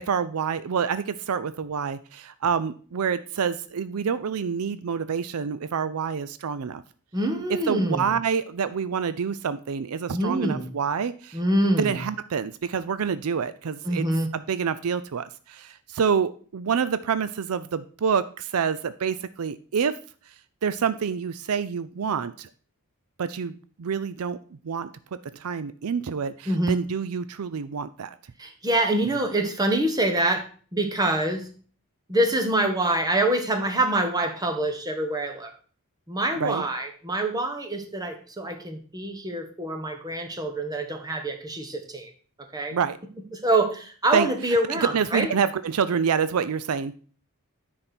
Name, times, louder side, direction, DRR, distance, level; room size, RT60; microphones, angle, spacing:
voice 1, 0.1-6.8 7.7-11.4 11.8-14.1 14.3-19.9 20.6-22.5 23.2-24.4 24.6-24.9 25.4-28.1 36.4-36.6 42.7-43.0 44.1-44.3 44.7-47.0, right 6 dB, 75° right, 14 dB, 0.5 m, -27 dB
voice 2, 7.1-8.2 10.1-10.7 11.3-12.0 13.8-14.3 26.5-26.8 28.4-30.4 30.7-31.5 32.1-35.5 36.1-42.1 42.5-42.8 43.3-45.3, right 1 dB, 15° right, 5 dB, 1.3 m, -25 dB
9.9 x 4.3 x 6.0 m, 0.42 s
head